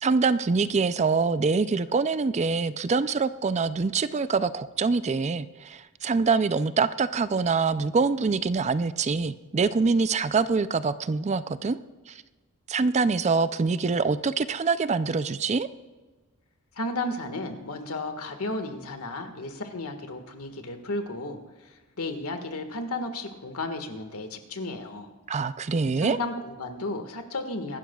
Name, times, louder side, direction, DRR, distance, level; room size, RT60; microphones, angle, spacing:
voice 1, 0.0-11.8 12.1-12.2 12.7-15.7 25.3-26.2, right 4 dB, 30° right, 13 dB, 0.4 m, -25 dB
voice 2, 16.8-25.1 26.0-27.8, left 2 dB, 80° left, 5 dB, 1.7 m, -33 dB
25.0 x 12.0 x 2.4 m, 1.3 s
head